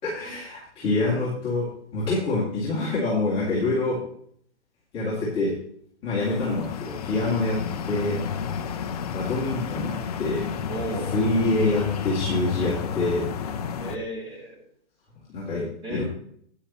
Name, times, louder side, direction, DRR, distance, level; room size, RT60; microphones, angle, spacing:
voice 1, 0.0-4.0 4.9-5.5 6.0-7.6 7.8-8.2 9.1-10.5 11.1-13.2 15.3-16.0, left 2 dB, 15° left, -8 dB, 2.7 m, -26 dB
sound 1, 6.2-14.0, left 7 dB, 35° left, 0.7 m, -31 dB
voice 2, 10.7-11.1 13.8-14.6 15.8-16.0, right 1 dB, 10° right, -4 dB, 4.3 m, -34 dB
12.0 x 9.4 x 3.1 m, 0.64 s
hypercardioid pair, 155°, 35 cm